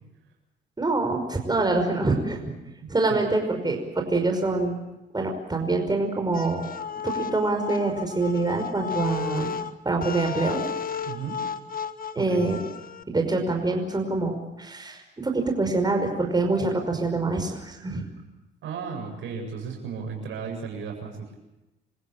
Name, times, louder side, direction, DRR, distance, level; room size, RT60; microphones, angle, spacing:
voice 1, 0.8-2.5 2.9-4.8 5.1-6.6 7.0-9.5 9.9-10.6 12.2-12.6 13.1-18.1, right 3 dB, 20° right, 3 dB, 5.5 m, -25 dB
voice 2, 2.8-3.2 11.1-11.4 12.2-12.5 18.6-21.4, right 6 dB, 70° right, 2 dB, 7.7 m, -35 dB
sound 1, 6.3-13.0, left 6 dB, 45° left, 1.5 m, -33 dB
28.0 x 16.0 x 8.8 m, 0.97 s
supercardioid pair, 70°, 21 cm